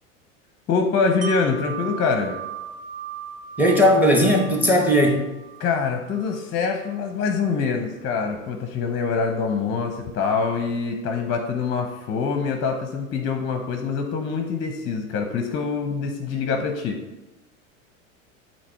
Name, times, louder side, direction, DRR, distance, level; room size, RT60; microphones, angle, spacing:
voice 1, 0.7-2.4 5.6-17.0, left 5 dB, 30° left, 4 dB, 0.8 m, -25 dB
Wind chime, 1.2-7.0 7.4-7.5, right 7 dB, 75° right, 1.2 m, -38 dB
voice 2, 3.6-5.3, equal, 5° right, 2 dB, 1.2 m, -17 dB
8.4 x 2.9 x 4.6 m, 1.0 s
hypercardioid pair, 90°, 40 cm